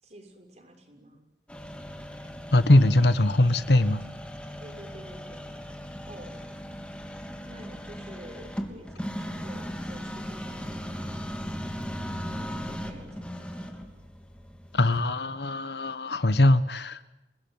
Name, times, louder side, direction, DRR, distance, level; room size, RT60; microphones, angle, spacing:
voice 1, 0.0-1.2 4.6-5.4 6.1-6.3 7.5-11.3 12.0-13.7, right 1 dB, 40° right, 4 dB, 6.6 m, -49 dB
sound 1, 1.5-15.1, equal, 5° left, 3.3 m, -38 dB
voice 2, 2.5-4.0 14.7-17.0, left 1 dB, 70° left, 13 dB, 1.4 m, -21 dB
29.5 x 19.5 x 9.7 m, 0.95 s
head